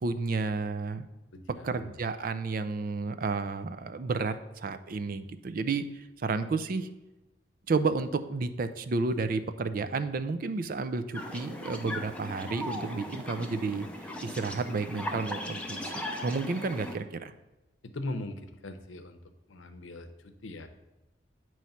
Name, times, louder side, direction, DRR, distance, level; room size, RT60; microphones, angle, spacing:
voice 1, 0.0-1.1 1.6-6.9 7.7-13.9 14.2-15.9 16.2-17.3, right 4 dB, 45° right, 11 dB, 0.4 m, -31 dB
voice 2, 1.3-1.9 17.8-19.2 19.5-20.7, left 2 dB, 85° left, 8 dB, 0.7 m, -40 dB
sound 1, 11.1-17.0, left 1 dB, 5° left, 0.6 m, -38 dB
9.1 x 3.1 x 5.6 m, 1.0 s
head